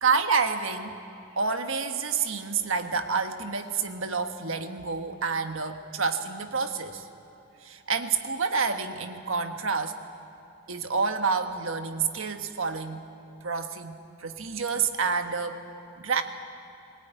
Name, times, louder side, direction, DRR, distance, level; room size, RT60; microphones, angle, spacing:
voice 1, 0.0-1.0 1.4-7.1 7.6-10.0 10.7-13.1 13.4-15.6 16.0-16.2, right 5 dB, 70° right, 7 dB, 1.4 m, -28 dB
22.0 x 19.0 x 9.3 m, 2.8 s
head